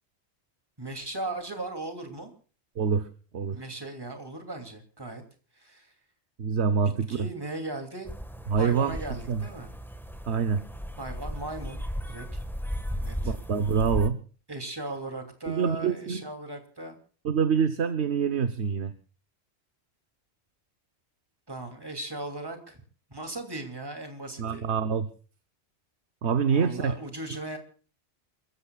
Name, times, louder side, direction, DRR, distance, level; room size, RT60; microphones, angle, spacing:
voice 1, 0.8-2.3 3.5-5.2 5.5-5.9 7.1-8.1 8.6-9.7 11.0-12.4 13.0-13.3 14.5-17.0 21.5-22.8 23.1-24.7 26.5-27.6, right 2 dB, 20° right, 5 dB, 2.8 m, -38 dB
voice 2, 2.8-3.1 3.3-3.6 6.4-7.3 8.5-9.0 9.3-9.4 10.3-10.6 13.2-14.2 15.5-16.2 17.2-18.9 24.4-25.1 26.2-26.9, right 6 dB, 80° right, 9 dB, 1.2 m, -25 dB
sound 1, 8.1-14.1, equal, ahead, 1.5 m, -35 dB
28.5 x 15.0 x 2.4 m, 0.39 s
omnidirectional pair, 1.1 m